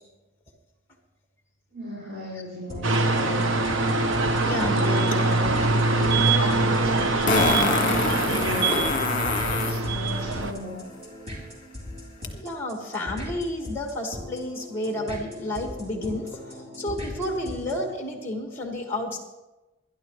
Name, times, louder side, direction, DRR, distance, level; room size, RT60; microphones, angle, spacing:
voice 1, 1.7-3.6 8.2-8.9 9.6-10.8, left 1 dB, 55° right, -7 dB, 5.8 m, -36 dB
sound 1, 2.7-17.9, left 1 dB, 35° right, 4.0 m, -39 dB
sound 2, 2.8-10.5, right 2 dB, 85° right, 1.1 m, -23 dB
voice 2, 4.4-5.8 7.0-7.1 8.7-8.8 12.3-19.2, left 1 dB, 10° left, 1 dB, 2.1 m, -31 dB
Fart, 6.2-6.3 7.3-9.8 12.2-12.3, left 3 dB, 45° left, 1.7 m, -25 dB
22.0 x 12.0 x 3.3 m, 1.0 s
head